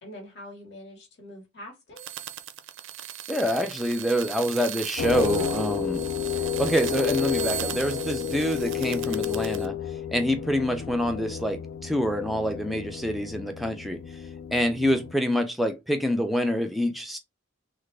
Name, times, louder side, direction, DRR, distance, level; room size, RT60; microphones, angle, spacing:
voice 1, 0.0-2.1, left 1 dB, 55° left, 1.1 m, -44 dB
sound 1, 2.0-9.7, right 12 dB, 70° right, 0.4 m, -37 dB
voice 2, 3.3-6.0 6.6-9.8 10.1-14.0 14.5-17.2, equal, ahead, 0.4 m, -26 dB
sound 2, 5.0-15.1, left 9 dB, 85° left, 0.3 m, -31 dB
3.4 x 2.1 x 3.2 m
head